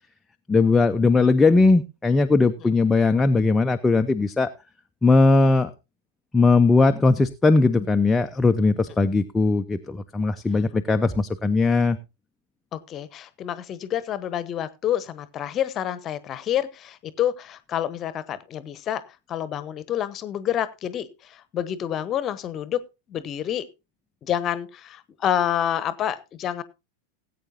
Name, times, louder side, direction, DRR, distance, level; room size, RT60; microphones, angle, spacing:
voice 1, 0.5-4.5 5.0-5.7 6.3-12.0, left 3 dB, 10° left, 6 dB, 0.6 m, -19 dB
voice 2, 12.7-19.0 19.3-22.8 23.1-23.6 24.2-26.6, left 10 dB, 30° left, 16 dB, 1.0 m, -28 dB
19.0 x 8.5 x 2.7 m, 0.26 s
figure-of-eight pair, 90°, 0 cm